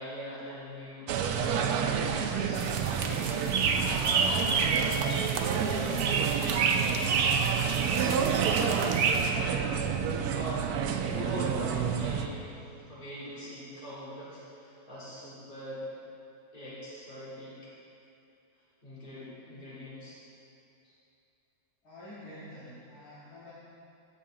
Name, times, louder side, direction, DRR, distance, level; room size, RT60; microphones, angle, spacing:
voice 1, 0.0-6.4 6.8-7.0 7.7-9.8 10.3-12.4 12.9-15.8 16.5-17.5 18.8-20.2 20.8-20.9, equal, 30° left, -11 dB, 2.6 m, -42 dB
sound 1, 1.1-12.3, right 7 dB, 85° right, 1.1 m, -29 dB
sound 2, 2.5-9.3, right 5 dB, 60° right, 0.9 m, -29 dB
voice 2, 21.8-23.5, left 1 dB, 80° left, -11 dB, 2.4 m, -47 dB
16.5 x 5.5 x 3.8 m, 2.6 s
omnidirectional pair, 1.6 m